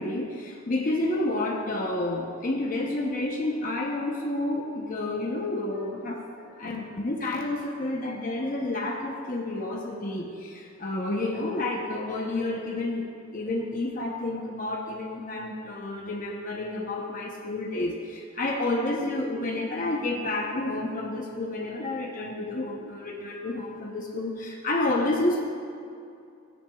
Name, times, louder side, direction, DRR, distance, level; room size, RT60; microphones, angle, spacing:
voice 1, 0.0-25.4, left 2 dB, 40° left, 0 dB, 0.8 m, -30 dB
16.5 x 9.9 x 2.4 m, 2.5 s
head